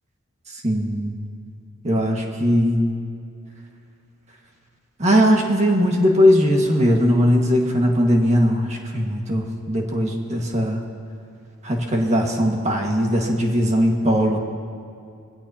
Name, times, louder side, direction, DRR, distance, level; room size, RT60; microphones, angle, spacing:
voice 1, 0.5-1.1 1.8-2.9 5.0-10.8 11.6-14.4, equal, 30° right, 0 dB, 1.7 m, -19 dB
22.0 x 16.5 x 2.9 m, 2.5 s
head